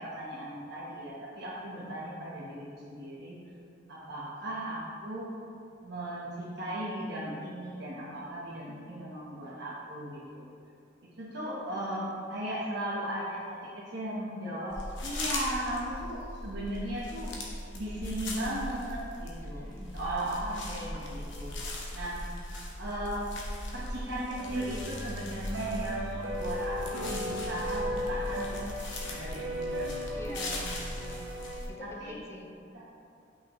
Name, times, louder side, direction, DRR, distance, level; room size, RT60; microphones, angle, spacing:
voice 1, 0.0-3.4 3.9-5.3 5.8-10.5 11.2-14.8 15.0-17.3 17.7-19.6 19.9-21.5 21.9-22.2 22.8-23.3 23.7-28.7 29.0-30.6 31.8-32.2 32.7-32.8, right 1 dB, 65° right, -8 dB, 1.0 m, -37 dB
sound 1, 14.7-31.7, left 1 dB, 75° left, 0.9 m, -39 dB
voice 2, 19.4-20.1 22.1-22.4 30.1-31.3 31.7-32.5, left 1 dB, 15° left, 0 dB, 0.6 m, -46 dB
sound 2, 24.4-31.6, equal, 90° right, 0.7 m, -37 dB
5.7 x 5.5 x 3.0 m, 2.5 s
head